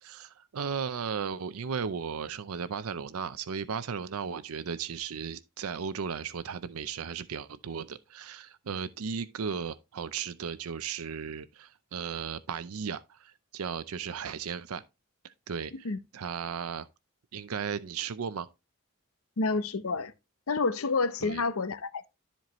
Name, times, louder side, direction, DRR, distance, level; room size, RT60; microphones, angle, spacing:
voice 1, 0.0-14.8 15.2-16.9 17.3-18.5 21.2-21.4, right 6 dB, 85° right, 0.5 m, -36 dB
voice 2, 19.4-20.1 20.5-22.1, left 3 dB, 75° left, 0.7 m, -29 dB
13.0 x 4.6 x 3.0 m
head